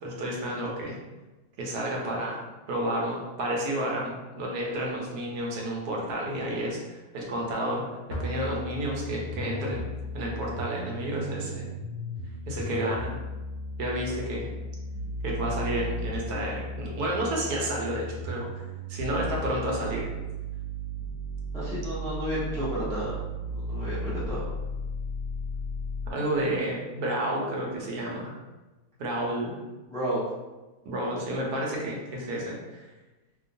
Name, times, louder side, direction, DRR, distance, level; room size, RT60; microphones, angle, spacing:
voice 1, 0.0-1.0 1.6-2.4 2.7-7.8 8.1-9.9 10.1-11.7 12.5-13.1 13.8-14.5 15.2-18.5 18.9-20.1 26.1-28.3 29.0-29.5 30.9-32.8, right 1 dB, 75° right, -2 dB, 1.2 m, -30 dB
sound 1, 8.1-26.1, equal, 65° left, 0.8 m, -35 dB
voice 2, 21.5-23.1 23.5-24.4 29.9-30.2, equal, 5° left, -10 dB, 0.3 m, -31 dB
2.9 x 2.1 x 2.6 m, 1.1 s
omnidirectional pair, 1.7 m